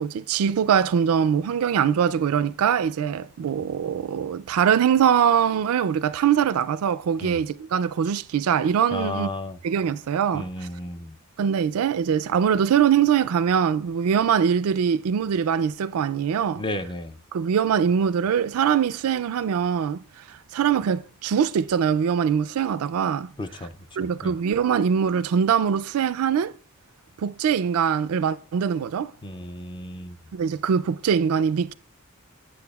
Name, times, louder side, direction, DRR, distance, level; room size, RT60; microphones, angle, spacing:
voice 1, 0.0-9.3 9.6-10.5 11.4-16.6 17.3-20.0 20.5-23.3 24.0-26.5 27.2-29.1 30.3-31.7, right 7 dB, 85° right, 0.3 m, -22 dB
voice 2, 8.9-9.6 10.3-11.2 16.6-17.1 23.4-23.7 24.2-24.4 29.2-30.2, left 1 dB, 20° left, 0.4 m, -33 dB
8.6 x 7.7 x 2.3 m
head